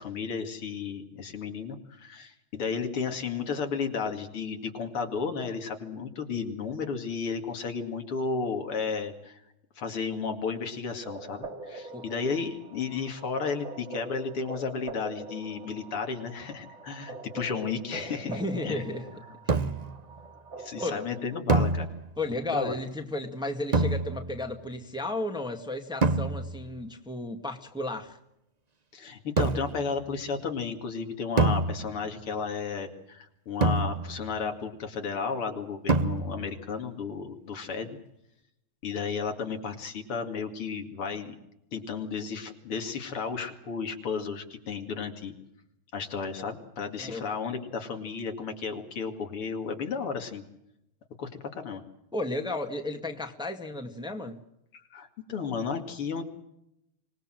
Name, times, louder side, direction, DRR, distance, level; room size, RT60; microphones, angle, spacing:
voice 1, 0.0-9.4 9.8-18.8 19.6-19.7 20.6-21.9 22.5-22.7 28.9-38.0 38.8-41.4 41.7-45.3 45.9-50.4 51.2-51.8 54.7-56.2, left 5 dB, 85° left, 5 dB, 3.3 m, -33 dB
sound 1, 11.0-21.4, right 3 dB, 35° right, 2.4 m, -44 dB
voice 2, 18.2-19.1 19.4-19.6 20.8-21.0 22.2-28.2 47.0-47.3 52.1-54.4, left 2 dB, ahead, 4 dB, 1.7 m, -33 dB
sound 2, 19.5-20.0 21.5-22.4 23.7-24.5 26.0-26.7 29.4-29.9 31.4-32.2 33.6-34.4 35.9-36.6, right 3 dB, 55° right, 0.4 m, -27 dB
25.5 x 19.5 x 7.7 m, 0.80 s
omnidirectional pair, 2.4 m